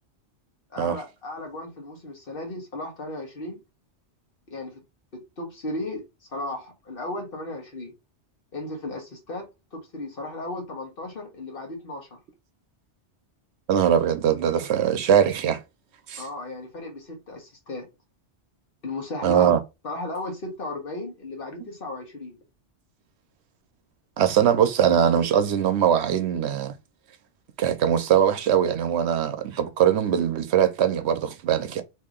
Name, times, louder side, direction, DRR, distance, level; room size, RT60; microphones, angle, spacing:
voice 1, 0.7-3.6 4.5-4.8 5.1-6.0 6.3-7.9 8.5-12.2 16.2-17.9 18.8-19.5 19.8-22.4, left 2 dB, 55° left, 1.3 m, -35 dB
voice 2, 13.7-15.6 16.1-16.3 19.2-19.6 24.2-26.7 27.6-31.8, right 9 dB, 75° right, 0.8 m, -21 dB
2.8 x 2.8 x 3.7 m
omnidirectional pair, 1.2 m